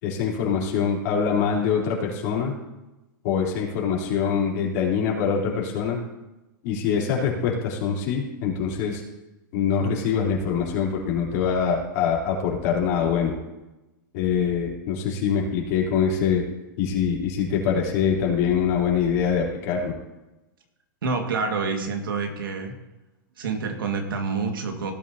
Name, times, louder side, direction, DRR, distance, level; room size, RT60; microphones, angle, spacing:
voice 1, 0.0-2.5 3.2-6.0 6.6-9.0 9.5-13.3 14.1-16.4 16.8-19.9, left 7 dB, 50° left, -3 dB, 3.5 m, -24 dB
voice 2, 21.0-22.7 23.4-24.9, right 4 dB, 90° right, 4 dB, 1.9 m, -27 dB
17.5 x 9.2 x 2.9 m, 1.0 s
hypercardioid pair, 135°, 11 cm